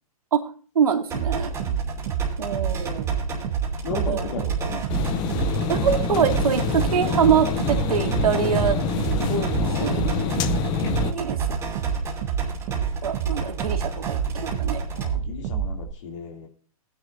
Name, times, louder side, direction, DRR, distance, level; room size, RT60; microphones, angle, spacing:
voice 1, 0.8-1.5 2.4-3.2 3.9-4.3 5.7-8.8 9.2-9.5 9.8-10.0 11.0-11.4 13.0-14.8, right 7 dB, 80° right, 4 dB, 2.2 m, -24 dB
sound 1, 1.1-15.1, right 3 dB, 15° right, 2.9 m, -35 dB
sound 2, 1.1-15.9, right 8 dB, 35° right, 1.3 m, -28 dB
voice 2, 1.6-2.0 3.8-5.1 9.6-10.5 14.9-16.5, left 4 dB, 50° left, 3 dB, 2.8 m, -36 dB
sound 3, 4.9-11.1, left 6 dB, 25° left, 0.7 m, -26 dB
18.5 x 9.9 x 2.6 m, 0.39 s
hypercardioid pair, 150°, 19 cm